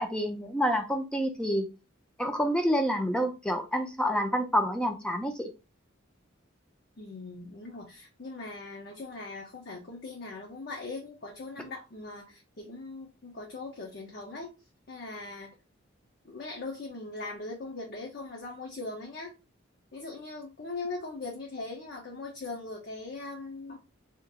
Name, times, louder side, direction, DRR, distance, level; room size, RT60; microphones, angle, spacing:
voice 1, 0.0-1.6 2.2-5.5, equal, 5° left, 4 dB, 0.5 m, -28 dB
voice 2, 7.0-14.5 14.9-15.6 16.2-19.3 19.9-23.8, left 3 dB, 50° left, -1 dB, 0.7 m, -40 dB
2.9 x 2.5 x 3.6 m, 0.28 s
head